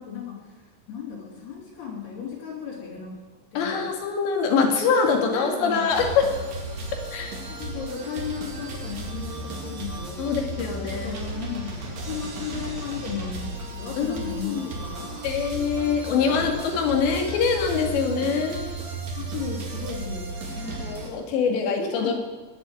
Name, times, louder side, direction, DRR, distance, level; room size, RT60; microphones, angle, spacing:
voice 1, 0.0-3.2 3.5-3.9 5.1-5.9 7.6-10.4 10.9-16.0 16.2-16.5 19.1-22.1, left 6 dB, 65° left, -4 dB, 5.3 m, -36 dB
voice 2, 3.6-6.3 7.1-7.4 10.2-11.2 14.0-14.7 15.2-18.6 20.6-22.1, left 5 dB, 85° left, 3 dB, 4.4 m, -24 dB
sound 1, 5.9-21.1, right 2 dB, 45° right, 3.4 m, -35 dB
20.0 x 7.8 x 9.1 m, 1.3 s
omnidirectional pair, 4.9 m